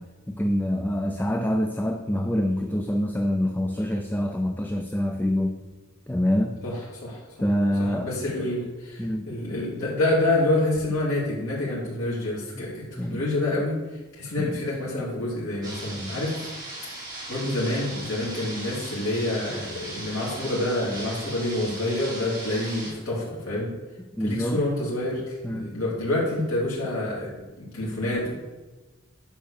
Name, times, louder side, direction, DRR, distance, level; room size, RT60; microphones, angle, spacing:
voice 1, 0.0-5.6 6.1-6.6 7.4-8.1 9.0-9.3 13.0-13.2 14.4-14.6 24.2-24.6 25.4-25.8, equal, 10° left, 5 dB, 0.5 m, -26 dB
voice 2, 7.8-13.8 14.2-16.5 17.0-23.7 24.2-28.4, left 1 dB, 75° left, -6 dB, 3.2 m, -27 dB
sound 1, 15.6-22.9, right 2 dB, 20° right, 3.3 m, -38 dB
10.0 x 4.1 x 6.6 m, 1.2 s
head